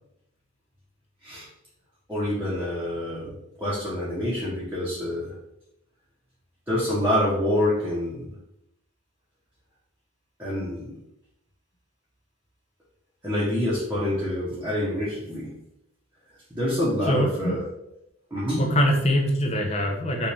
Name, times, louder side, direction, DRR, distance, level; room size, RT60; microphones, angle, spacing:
voice 1, 2.1-3.3 3.6-5.3 6.7-8.3 10.4-10.9 13.2-15.5 16.5-17.7 18.3-18.7, left 1 dB, 10° right, -9 dB, 1.1 m, -26 dB
voice 2, 17.0-17.6 18.6-20.3, equal, 30° left, 1 dB, 0.8 m, -23 dB
5.5 x 2.7 x 3.4 m, 0.85 s
head